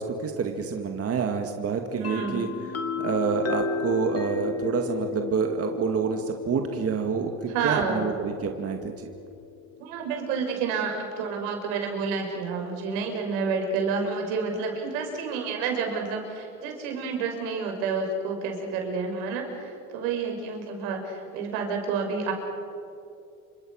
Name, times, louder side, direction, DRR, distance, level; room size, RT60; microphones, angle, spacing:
voice 1, 0.0-2.5 3.0-9.1, right 6 dB, 35° right, 4 dB, 2.2 m, -28 dB
sound 1, 2.0-9.7, left 6 dB, 35° left, 2.4 m, -34 dB
voice 2, 2.0-2.7 7.5-8.1 9.8-22.3, right 5 dB, 75° right, 3 dB, 6.2 m, -29 dB
28.5 x 25.5 x 6.5 m, 2.6 s
supercardioid pair, 105°, 40 cm